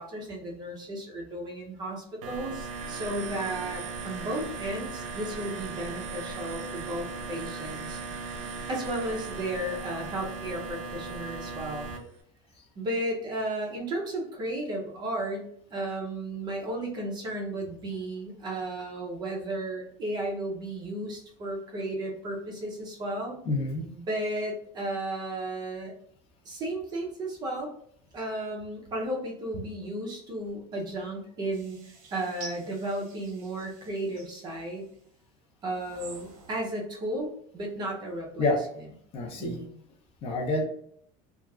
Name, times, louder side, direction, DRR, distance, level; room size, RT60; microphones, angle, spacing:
voice 1, 0.0-8.0 8.7-11.9 12.8-23.4 23.9-25.9 26.4-27.7 28.1-31.8 32.1-34.8 35.6-38.5 39.4-39.7, right 1 dB, 25° right, 0 dB, 0.6 m, -34 dB
sound 1, 2.2-12.0, right 4 dB, 80° right, 0.6 m, -37 dB
voice 2, 23.5-23.9 38.4-38.6 39.1-39.6 40.2-40.6, left 2 dB, 35° left, 2 dB, 0.5 m, -27 dB
sound 2, 31.5-35.0 35.6-36.7, right 4 dB, 55° right, 0.9 m, -49 dB
3.0 x 2.3 x 2.3 m, 0.65 s
cardioid pair, 165°, 16 cm